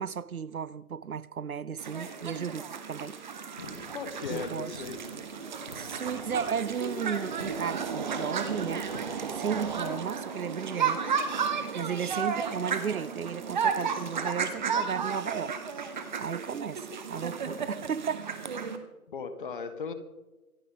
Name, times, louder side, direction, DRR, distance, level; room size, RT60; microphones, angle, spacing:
voice 1, 0.0-3.2 4.3-4.7 5.7-8.9 9.3-11.2 11.7-15.6 16.0-18.3, right 7 dB, 70° right, 0.7 m, -34 dB
sound 1, 1.8-18.8, right 6 dB, 30° right, 1.5 m, -33 dB
sound 2, 3.6-10.2, left 4 dB, 15° left, 0.8 m, -49 dB
voice 2, 3.9-5.0 12.1-12.2 19.1-19.9, left 5 dB, 35° left, 1.6 m, -37 dB
26.0 x 11.0 x 3.8 m
figure-of-eight pair, 150°, 45 cm